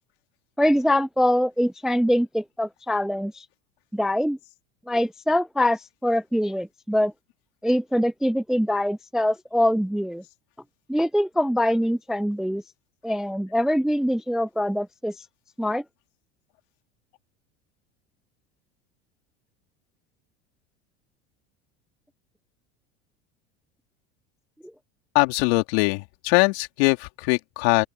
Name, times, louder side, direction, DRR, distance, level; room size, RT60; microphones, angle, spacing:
voice 1, 0.6-3.5 3.9-4.4 4.9-7.1 7.6-10.2 10.9-12.6 13.0-15.2 15.6-15.8, left 1 dB, ahead, 0.4 m, -23 dB
voice 2, 25.2-27.8, left 28 dB, 70° left, 3.5 m, -22 dB
open air
hypercardioid pair, 90°, 33 cm